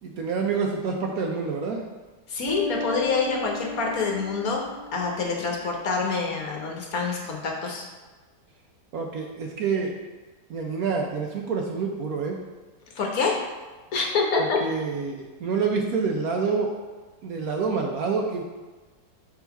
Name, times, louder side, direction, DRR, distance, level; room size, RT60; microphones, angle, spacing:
voice 1, 0.0-1.8 8.9-9.9 10.5-12.4 14.4-16.7 17.2-18.4, right 5 dB, 65° right, 1 dB, 1.0 m, -27 dB
voice 2, 2.3-4.6 4.9-7.9 12.9-13.4 13.9-14.6, left 4 dB, 60° left, 0 dB, 1.2 m, -26 dB
Bass guitar, 2.5-6.0, left 1 dB, 30° left, 1.3 m, -36 dB
4.8 x 3.8 x 5.6 m, 1.3 s
omnidirectional pair, 1.9 m